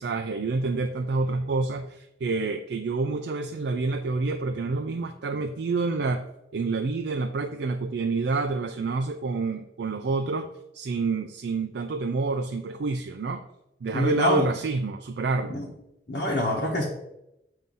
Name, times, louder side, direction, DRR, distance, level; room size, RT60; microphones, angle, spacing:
voice 1, 0.0-6.3 6.5-10.5 10.7-13.4 13.8-15.6, right 3 dB, 65° right, 6 dB, 0.4 m, -28 dB
voice 2, 13.9-14.5 15.5-15.7 16.1-16.9, left 1 dB, 65° left, -3 dB, 1.0 m, -25 dB
7.5 x 2.7 x 5.4 m, 0.85 s
head